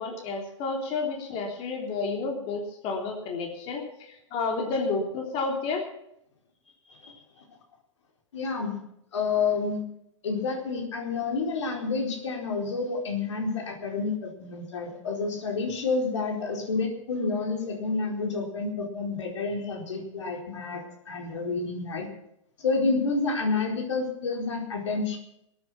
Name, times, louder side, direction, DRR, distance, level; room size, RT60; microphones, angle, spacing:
voice 1, 0.0-5.8, left 3 dB, 35° left, 1 dB, 3.5 m, -31 dB
voice 2, 8.3-8.8 9.1-9.8 10.2-22.1 22.6-25.2, left 4 dB, 70° left, 1 dB, 4.4 m, -29 dB
20.0 x 9.6 x 6.1 m, 0.76 s
figure-of-eight pair, 110°, 16 cm